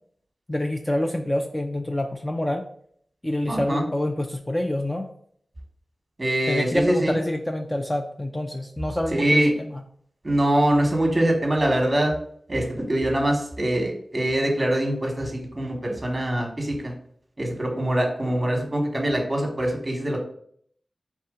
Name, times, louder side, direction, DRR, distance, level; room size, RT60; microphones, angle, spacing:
voice 1, 0.5-2.6 3.2-5.1 6.5-9.8, left 1 dB, 15° left, 3 dB, 0.4 m, -27 dB
voice 2, 3.5-3.8 6.2-7.1 9.1-9.5 10.2-12.1 12.5-16.9 17.4-20.2, right 1 dB, 25° right, 1 dB, 1.1 m, -23 dB
4.3 x 3.4 x 3.6 m, 0.63 s
wide cardioid pair, 105°, 0 cm